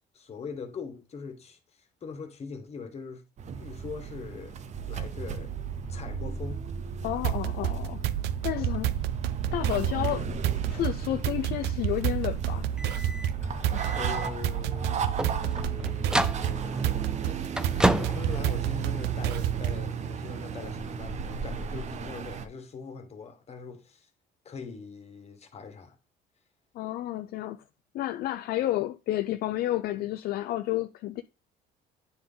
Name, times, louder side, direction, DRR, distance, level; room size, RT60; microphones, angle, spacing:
voice 1, 0.1-3.2 3.6-4.6 4.9-5.5 5.9-6.6 13.9-24.1 24.4-26.0, left 5 dB, 40° left, 1.5 m, -42 dB
sound 1, 3.4-22.5, right 6 dB, 45° right, 0.7 m, -35 dB
voice 2, 7.0-8.0 8.4-8.9 9.5-10.3 10.7-12.7 13.4-13.8 26.7-27.6 27.9-31.2, left 14 dB, 65° left, 0.4 m, -31 dB
sound 2, 7.2-19.9, right 13 dB, 85° right, 0.4 m, -30 dB
sound 3, 12.7-19.2, right 1 dB, 5° right, 0.4 m, -32 dB
9.4 x 3.8 x 3.8 m
cardioid pair, 110°, 17 cm